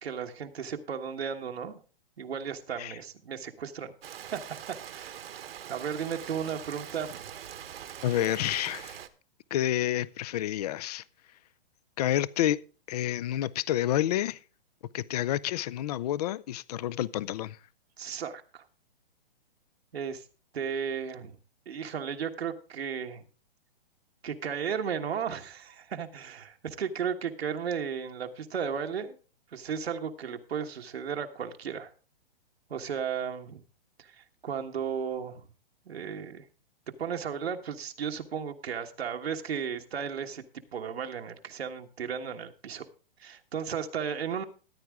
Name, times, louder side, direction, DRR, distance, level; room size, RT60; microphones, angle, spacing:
voice 1, 0.0-1.8 2.2-3.9 4.3-4.4 4.9-5.2 5.7-7.3 18.0-18.6 19.9-20.2 20.5-21.3 21.7-23.2 24.2-29.2 29.5-31.9 32.7-33.6 34.0-35.5 35.8-36.4 37.0-40.4 40.7-42.9 43.2-44.4, right 7 dB, 90° right, 1.5 m, -34 dB
Rain, 4.0-9.1, right 10 dB, 70° right, 1.2 m, -43 dB
voice 2, 8.0-9.0 9.5-11.0 12.0-14.4 14.9-17.6, left 12 dB, 40° left, 0.4 m, -29 dB
14.5 x 9.4 x 3.6 m
hypercardioid pair, 150°, 30 cm